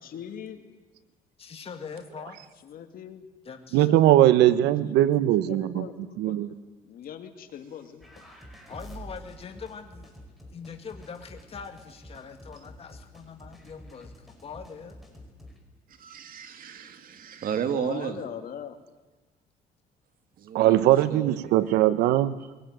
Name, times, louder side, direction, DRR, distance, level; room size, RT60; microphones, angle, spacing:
voice 1, 0.0-0.6 2.6-3.3 4.5-4.7 5.1-6.6 6.8-8.3 17.7-18.8, left 8 dB, 60° left, 6 dB, 2.6 m, -41 dB
voice 2, 1.4-2.4 3.5-4.2 8.7-10.2 10.5-15.0 20.6-20.7, left 6 dB, 35° left, 5 dB, 2.1 m, -42 dB
voice 3, 3.7-5.9 6.2-6.5 20.5-22.3, right 13 dB, 85° right, 14 dB, 1.1 m, -20 dB
sound 1, 8.0-15.6, equal, ahead, 5.0 m, -48 dB
voice 4, 16.0-18.2 20.4-21.8, right 8 dB, 55° right, 8 dB, 2.3 m, -34 dB
22.0 x 18.0 x 9.3 m, 1.2 s
cardioid pair, 110°, 17 cm